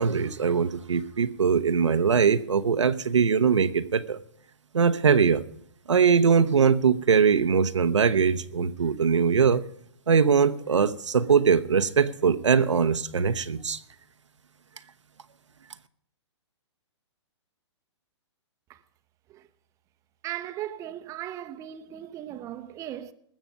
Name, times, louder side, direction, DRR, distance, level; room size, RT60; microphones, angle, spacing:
voice 1, 0.0-4.2 4.7-5.4 5.9-9.6 10.1-13.8, right 6 dB, 85° right, 0.8 m, -22 dB
voice 2, 20.2-23.1, right 12 dB, 20° right, 0.7 m, -37 dB
20.0 x 7.4 x 5.2 m
hypercardioid pair, 130°, 15 cm